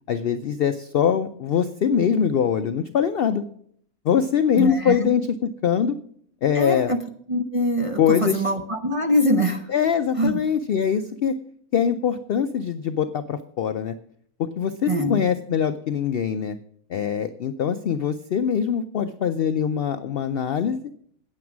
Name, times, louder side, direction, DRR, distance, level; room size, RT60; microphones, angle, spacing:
voice 1, 0.1-3.4 4.0-5.3 5.6-6.0 6.4-6.9 8.0-8.4 9.7-11.4 11.7-13.9 14.4-16.6 16.9-20.8, left 8 dB, 65° left, 10 dB, 0.5 m, -23 dB
voice 2, 4.6-5.0 6.5-7.0 7.3-9.7 10.2-10.4 14.9-15.2, equal, 35° right, 5 dB, 0.6 m, -23 dB
9.3 x 8.7 x 6.1 m, 0.65 s
omnidirectional pair, 1.5 m